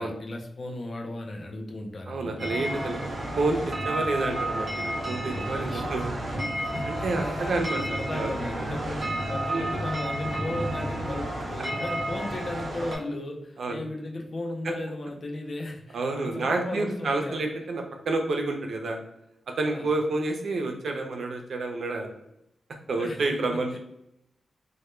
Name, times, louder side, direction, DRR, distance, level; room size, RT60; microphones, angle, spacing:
voice 1, 0.0-2.5 5.6-6.1 6.5-17.4 19.6-19.9 23.0-23.8, left 1 dB, 50° left, 2 dB, 0.4 m, -36 dB
voice 2, 2.1-3.0 3.4-6.1 6.8-8.3 9.5-9.7 13.6-13.8 14.6-14.7 15.9-19.0 19.6-22.1 22.9-23.8, right 2 dB, 70° right, 3 dB, 0.4 m, -29 dB
sound 1, 2.4-13.0, right 1 dB, 50° right, 0.8 m, -31 dB
2.1 x 2.1 x 3.0 m, 0.82 s
wide cardioid pair, 105°, 0 cm